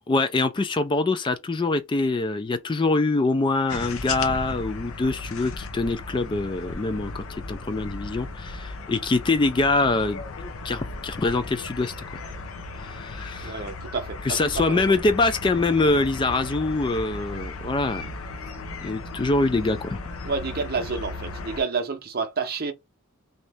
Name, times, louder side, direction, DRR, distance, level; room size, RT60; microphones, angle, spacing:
voice 1, 0.1-10.2 10.6-12.2 12.8-13.6 14.2-18.1 18.8-20.0, left 3 dB, 25° left, 0.3 m, -24 dB
sound 1, 3.7-21.6, left 3 dB, 80° left, 0.6 m, -36 dB
voice 2, 13.4-14.4 14.7-14.8 20.2-22.7, right 4 dB, 45° right, 0.7 m, -29 dB
3.1 x 2.8 x 3.4 m
head